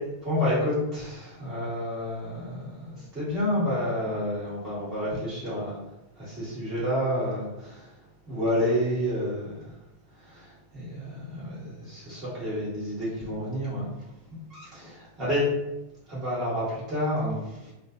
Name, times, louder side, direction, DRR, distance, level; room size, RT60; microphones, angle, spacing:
voice 1, 0.2-5.8 6.2-7.9 8.3-9.6 10.3-10.5 10.7-13.9 14.5-15.4 16.1-17.7, left 1 dB, 25° right, -10 dB, 1.4 m, -29 dB
2.5 x 2.2 x 2.6 m, 0.96 s
figure-of-eight pair, 90°, 0 cm